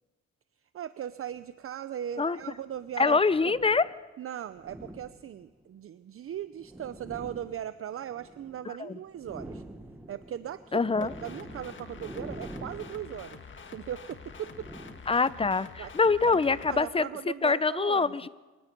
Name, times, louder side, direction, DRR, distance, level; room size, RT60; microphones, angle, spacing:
voice 1, 0.7-3.5 4.2-9.6 10.1-13.4 13.7-14.7 15.8-15.9 16.3-18.3, right 10 dB, 50° right, 14 dB, 0.6 m, -38 dB
sound 1, 1.3-1.4 2.4-3.9 4.5-5.6 6.3-8.7 9.0-15.6, right 1 dB, 5° right, 1.6 m, -47 dB
voice 2, 3.0-3.9 8.8-9.0 10.7-11.1 15.1-17.1 17.4-18.3, left 4 dB, 20° left, 17 dB, 0.7 m, -24 dB
sound 2, 11.0-16.8, left 5 dB, 40° left, 1.7 m, -47 dB
25.5 x 19.0 x 5.4 m, 1.3 s
cardioid pair, 90°, 30 cm